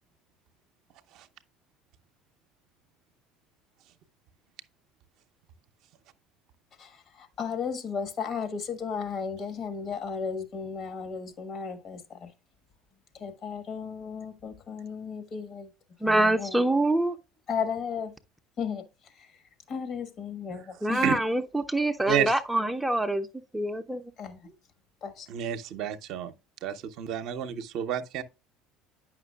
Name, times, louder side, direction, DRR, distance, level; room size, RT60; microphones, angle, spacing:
voice 1, 6.8-12.3 13.2-15.7 16.0-16.6 17.5-18.1 18.6-18.9 19.7-21.0 24.2-24.5 25.0-25.3, left 6 dB, 50° left, 1.3 m, -34 dB
voice 2, 16.0-17.2 20.8-23.3 23.5-24.0, right 1 dB, 5° right, 0.5 m, -25 dB
voice 3, 25.3-26.3 26.6-28.2, right 9 dB, 60° right, 0.6 m, -30 dB
9.3 x 5.8 x 2.3 m
hypercardioid pair, 65°, 0 cm